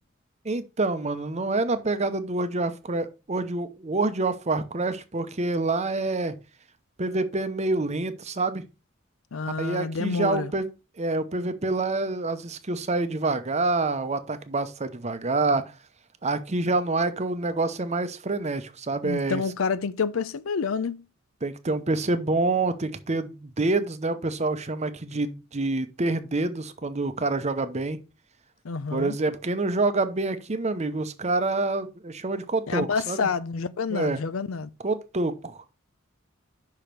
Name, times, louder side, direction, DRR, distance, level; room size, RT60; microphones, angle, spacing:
voice 1, 0.4-6.3 7.0-8.7 9.6-10.7 11.0-15.6 16.2-19.4 21.4-28.0 28.9-33.2 33.9-34.2 34.8-35.7, right 3 dB, 35° right, 0.8 m, -27 dB
voice 2, 9.3-10.5 19.0-21.0 28.6-29.2 32.7-34.7, left 5 dB, 80° left, 0.6 m, -28 dB
5.7 x 5.1 x 5.8 m
head